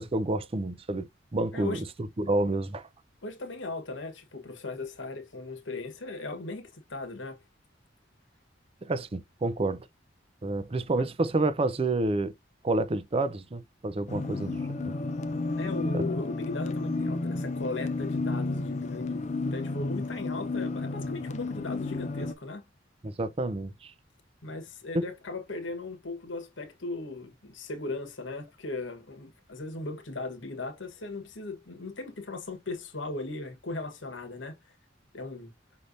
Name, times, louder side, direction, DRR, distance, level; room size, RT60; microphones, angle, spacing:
voice 1, 0.0-1.8 2.2-2.8 8.8-9.8 10.4-12.3 12.6-14.6 14.9-15.0 15.9-16.0 23.0-23.9 24.9-25.0, right 2 dB, 30° right, 0.5 m, -29 dB
voice 2, 1.5-1.8 3.2-7.4 11.0-11.1 14.1-14.4 15.6-22.7 24.4-34.5 35.1-35.5, left 3 dB, 85° left, 1.3 m, -38 dB
sound 1, 14.1-22.3, left 3 dB, 40° left, 0.5 m, -32 dB
5.6 x 3.2 x 2.6 m
head